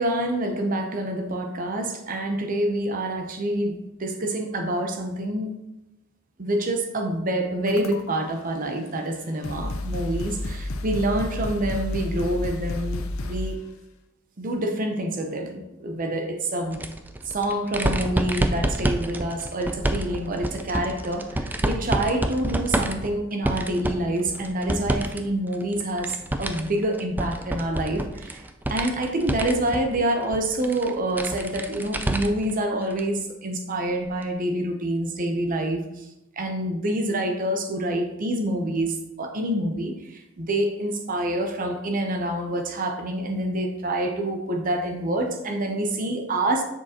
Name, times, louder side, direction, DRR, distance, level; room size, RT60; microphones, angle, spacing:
voice 1, 0.0-5.5 6.4-13.6 14.4-16.8 17.3-28.4 28.7-36.0 36.4-46.6, right 1 dB, 40° right, 4 dB, 0.6 m, -27 dB
sound 1, 7.7-8.3 9.1-9.2 9.4-13.6, left 1 dB, 85° left, 0.6 m, -31 dB
sound 2, 16.7-25.2 25.5-32.5 32.9-33.0 34.2-34.3, right 1 dB, 10° right, 0.3 m, -28 dB
7.4 x 6.3 x 2.9 m, 0.93 s
head